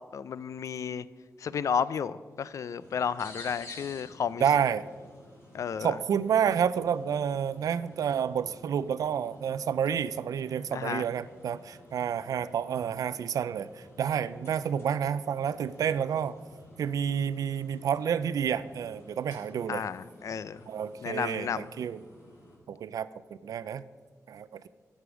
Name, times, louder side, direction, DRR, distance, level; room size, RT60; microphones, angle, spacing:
voice 1, 0.1-1.1 1.4-4.4 5.5-6.0 10.7-11.0 19.7-20.6 21.0-21.7, left 7 dB, 65° left, 17 dB, 0.4 m, -32 dB
sound 1, 2.8-22.6, left 1 dB, 45° left, 3.1 m, -53 dB
voice 2, 4.4-4.8 5.8-16.4 16.8-19.8 20.7-22.0 22.7-23.1 23.4-23.8 24.3-24.6, right 8 dB, 90° right, 16 dB, 0.4 m, -29 dB
12.5 x 5.0 x 6.0 m, 1.5 s
wide cardioid pair, 140°, 6 cm